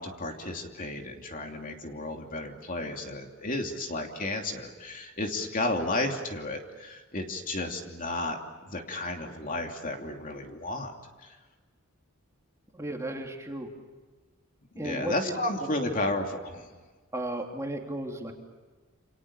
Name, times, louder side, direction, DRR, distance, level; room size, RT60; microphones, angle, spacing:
voice 1, 0.0-10.9 11.2-11.4 14.7-16.7, left 2 dB, 40° left, 3 dB, 2.9 m, -33 dB
voice 2, 12.7-13.7 14.8-15.1 15.8-15.9 17.1-18.3, right 1 dB, 15° right, 1 dB, 3.1 m, -34 dB
29.0 x 27.5 x 7.1 m, 1.3 s
head